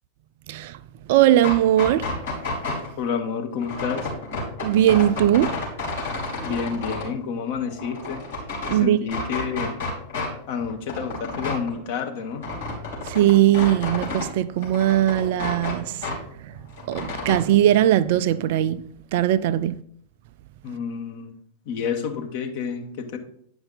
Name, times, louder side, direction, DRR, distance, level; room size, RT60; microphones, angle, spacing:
voice 1, 0.5-0.8 1.1-2.1 4.6-5.5 8.7-9.0 13.0-16.1 16.4-16.5 16.9-18.8 19.1-19.8, right 12 dB, 50° right, 0.4 m, -19 dB
sound 1, 1.3-2.9 3.6-7.1 7.5-8.8 9.1-10.3 10.6-14.3 14.6-16.2 16.5-17.4, left 2 dB, 65° left, 3.1 m, -30 dB
voice 2, 3.0-4.1 6.4-8.2 8.7-9.7 10.5-12.5 20.6-21.4 21.6-23.2, left 6 dB, 50° left, 1.2 m, -29 dB
9.6 x 5.4 x 3.9 m
figure-of-eight pair, 90°, 0 cm